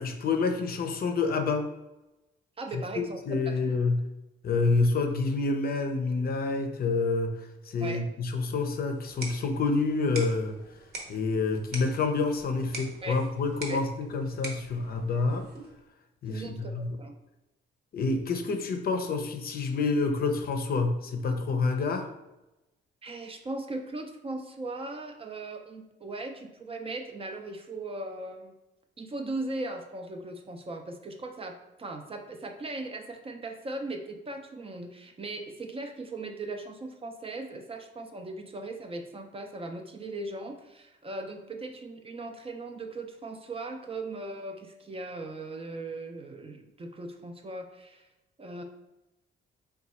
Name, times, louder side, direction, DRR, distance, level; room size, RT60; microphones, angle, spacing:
voice 1, 0.0-1.7 3.0-4.0 4.4-10.6 11.1-15.5 16.2-17.0 17.9-22.1, left 3 dB, 50° left, 5 dB, 0.5 m, -28 dB
voice 2, 2.6-3.7 7.8-8.0 13.0-13.2 13.7-13.8 16.3-17.1 23.0-28.5 29.0-48.1 48.4-48.6, right 2 dB, 30° right, 4 dB, 0.5 m, -38 dB
sound 1, 8.9-15.9, right 3 dB, 50° right, 0.9 m, -44 dB
3.9 x 2.3 x 4.1 m, 0.96 s
cardioid pair, 90°, 20 cm